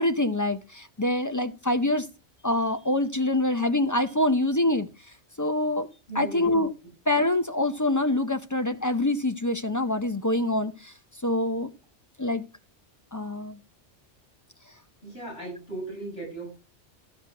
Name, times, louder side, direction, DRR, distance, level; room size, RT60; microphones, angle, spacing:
voice 1, 0.0-2.1 2.4-4.9 5.4-5.9 6.2-6.7 7.1-10.9 11.2-11.7 12.2-12.4 13.1-13.6, left 1 dB, 25° left, 0.4 m, -25 dB
voice 2, 6.1-6.6 15.0-16.5, right 2 dB, 85° left, 8.0 m, -36 dB
13.5 x 6.1 x 6.0 m
omnidirectional pair, 1.2 m